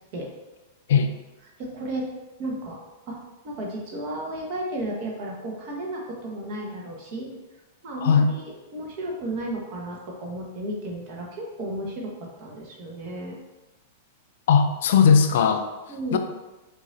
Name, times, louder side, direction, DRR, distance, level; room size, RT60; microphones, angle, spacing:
voice 1, 1.6-2.1 2.4-2.8 3.1-3.2 3.4-7.3 7.8-12.1 12.4-13.4 15.9-16.2, right 1 dB, 45° right, -1 dB, 1.2 m, -33 dB
voice 2, 14.5-15.6 16.1-16.2, left 6 dB, 60° left, 7 dB, 0.3 m, -18 dB
6.1 x 2.7 x 2.6 m, 1.1 s
figure-of-eight pair, 95°, 0 cm